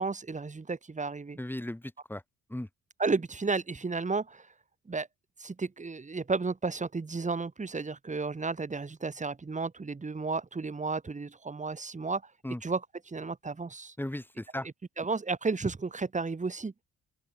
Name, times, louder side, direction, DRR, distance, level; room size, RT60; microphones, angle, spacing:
voice 1, 0.0-1.4 3.0-4.5 4.9-5.1 5.4-12.3 12.6-12.8 13.1-13.9 15.0-16.7, right 4 dB, 25° right, 2.3 m, -33 dB
voice 2, 1.4-2.2 2.5-2.7 12.4-12.6 14.0-14.7, left 1 dB, 5° left, 5.5 m, -36 dB
open air
cardioid pair, 90°, 30 cm